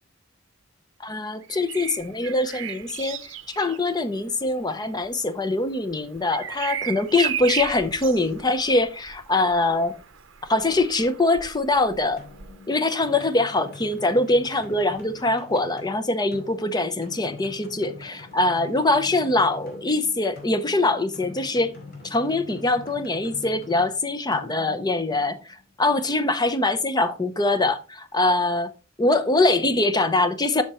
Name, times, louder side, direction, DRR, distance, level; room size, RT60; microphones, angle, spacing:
voice 1, 1.0-3.2 3.6-9.9 10.5-12.2 12.7-21.7 22.0-25.4 25.8-28.7 29.0-30.6, left 2 dB, 20° left, 0.6 m, -23 dB
Bird vocalization bird call bird song, 1.4-13.2 14.9-15.1, right 10 dB, 65° right, 0.7 m, -36 dB
sound 1, 12.2-25.7, left 3 dB, 50° left, 2.4 m, -44 dB
7.8 x 5.8 x 3.0 m
head